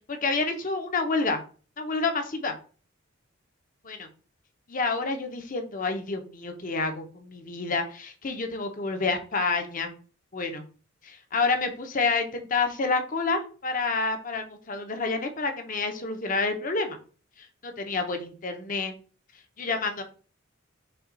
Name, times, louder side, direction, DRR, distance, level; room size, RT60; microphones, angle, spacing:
voice 1, 0.1-1.4 1.8-2.6 3.8-4.1 4.7-9.9 10.3-10.6 11.0-17.0 17.6-18.9 19.6-20.0, left 3 dB, 40° left, 6 dB, 0.8 m, -28 dB
5.6 x 2.3 x 3.9 m, 0.38 s
head